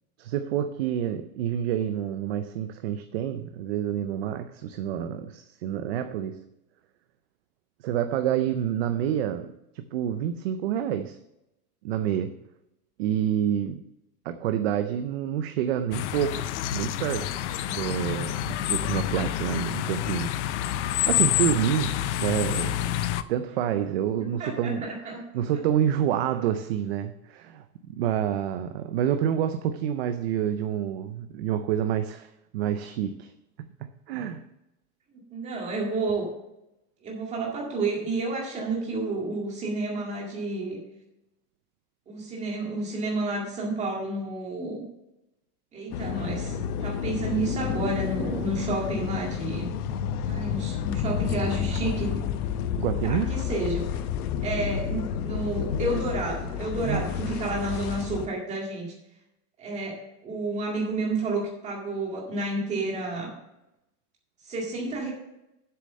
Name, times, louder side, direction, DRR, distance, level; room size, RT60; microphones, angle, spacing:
voice 1, 0.2-6.4 7.8-11.2 11.8-12.3 13.0-13.8 14.3-17.4 17.7-22.8 23.3-24.8 25.3-33.3 34.1-34.4 52.8-53.4 56.8-57.0, right 10 dB, 45° right, 9 dB, 0.5 m, -28 dB
sound 1, 15.9-23.2, left 12 dB, 55° left, 0.5 m, -28 dB
voice 2, 24.2-25.2 25.5-25.6 35.1-36.3 37.0-40.8 42.1-44.8 45.7-49.7 50.3-52.2 53.0-53.8 54.4-58.9 59.6-63.3 64.4-65.1, right 2 dB, 15° right, -2 dB, 2.0 m, -30 dB
sound 2, 45.9-58.3, left 8 dB, 80° left, 0.8 m, -30 dB
7.8 x 6.7 x 6.3 m, 0.89 s
supercardioid pair, 180°, 44 cm